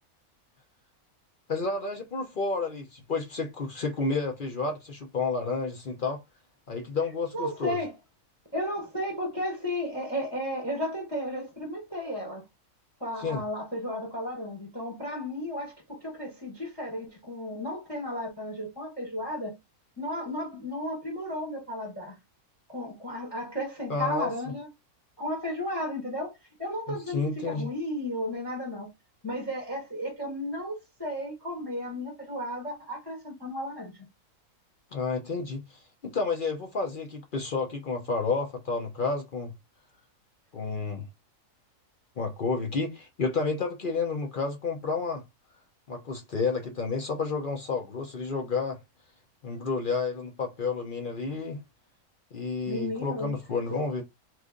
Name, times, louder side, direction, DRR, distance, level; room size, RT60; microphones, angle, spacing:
voice 1, 1.5-6.2 6.7-7.8 13.2-13.4 23.9-24.3 27.1-27.7 34.9-39.5 40.5-41.1 42.2-45.2 45.9-48.8 49.4-51.6 52.3-54.0, left 4 dB, 50° left, 0.6 m, -30 dB
voice 2, 7.3-8.0 8.5-12.4 13.0-19.6 20.0-22.2 22.7-24.7 25.2-28.9 29.2-33.9 52.7-53.4 53.7-53.8, left 1 dB, 20° left, 1.1 m, -34 dB
3.1 x 2.5 x 3.6 m
omnidirectional pair, 1.6 m